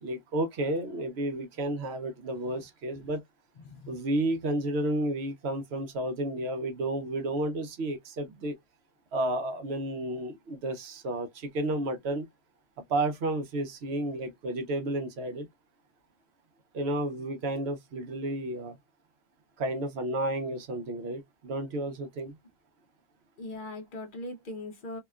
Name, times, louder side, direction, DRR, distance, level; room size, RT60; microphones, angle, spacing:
voice 1, 0.0-3.2 3.9-8.5 9.1-12.2 12.9-15.5 16.7-18.8 19.6-22.3, right 1 dB, 65° right, 0.9 m, -31 dB
voice 2, 3.6-4.0 23.4-25.0, left 1 dB, 50° left, 0.8 m, -40 dB
2.8 x 2.2 x 2.2 m
omnidirectional pair, 1.3 m